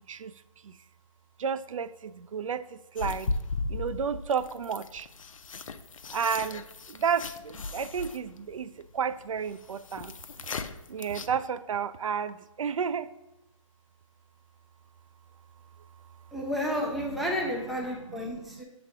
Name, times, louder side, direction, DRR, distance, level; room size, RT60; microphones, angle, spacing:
voice 1, 1.4-2.6 3.0-3.3 3.7-5.1 6.1-6.6 6.9-10.1 10.9-13.1, right 7 dB, 70° right, 14 dB, 0.4 m, -31 dB
sound 1, 3.0-11.3, left 3 dB, 70° left, 0.5 m, -37 dB
voice 2, 16.3-18.6, equal, ahead, -2 dB, 0.5 m, -31 dB
6.9 x 3.4 x 4.7 m, 0.94 s
figure-of-eight pair, 140°, 18 cm